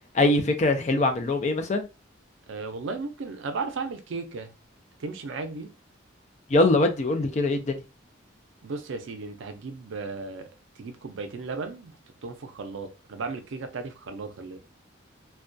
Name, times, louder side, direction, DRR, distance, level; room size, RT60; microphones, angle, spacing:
voice 1, 0.1-1.9 6.5-7.8, left 2 dB, 35° left, 0.3 m, -22 dB
voice 2, 2.5-4.5 5.0-5.7 8.6-10.5 10.8-11.9 12.2-14.6, right 4 dB, 70° right, 0.4 m, -35 dB
2.2 x 2.2 x 2.5 m
head